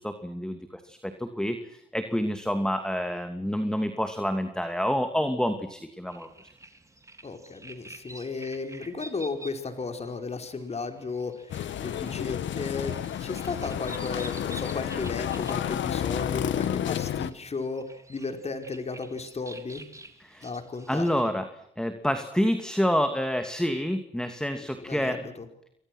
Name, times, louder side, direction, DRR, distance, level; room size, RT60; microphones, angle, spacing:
voice 1, 0.0-6.3 20.2-20.5 20.9-21.5 21.8-25.2, equal, 5° left, 7 dB, 2.6 m, -28 dB
sound 1, 6.1-21.3, right 2 dB, 15° right, 3.8 m, -49 dB
voice 2, 7.2-17.8 18.1-19.8 20.4-21.3 24.6-25.5, left 4 dB, 30° left, 6 dB, 4.9 m, -35 dB
sound 2, 11.5-17.3, left 10 dB, 70° left, 1.7 m, -31 dB
29.0 x 24.0 x 6.2 m, 0.76 s
cardioid pair, 90°, 20 cm